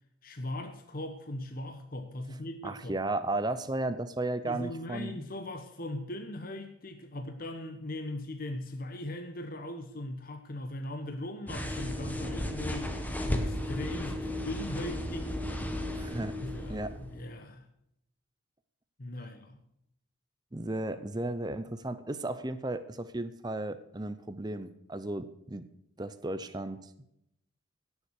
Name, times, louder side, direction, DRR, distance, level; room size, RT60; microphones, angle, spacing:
voice 1, 0.2-3.1 4.4-15.4 16.4-17.7 19.0-19.6, left 1 dB, 45° left, 1.1 m, -39 dB
voice 2, 2.6-5.2 16.0-16.4 16.7-16.9 20.5-25.6 26.0-26.8, right 2 dB, 20° right, 0.7 m, -34 dB
sound 1, 11.5-17.2, left 1 dB, 10° left, 1.3 m, -34 dB
16.5 x 7.2 x 6.5 m
head